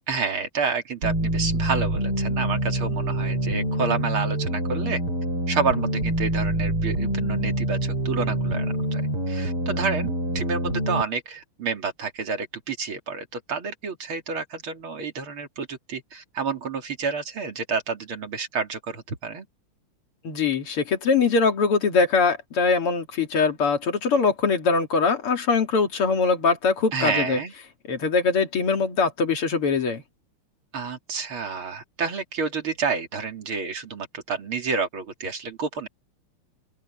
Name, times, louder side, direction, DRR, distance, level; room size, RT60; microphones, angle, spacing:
voice 1, 0.1-5.0 5.5-9.0 9.3-19.5 26.9-27.5 30.7-35.9, right 5 dB, 70° right, 3.4 m, -29 dB
sound 1, 1.0-11.0, right 1 dB, 85° right, 6.0 m, -26 dB
voice 2, 20.2-27.4 27.9-30.0, left 4 dB, 80° left, 3.2 m, -22 dB
open air
omnidirectional pair, 2.4 m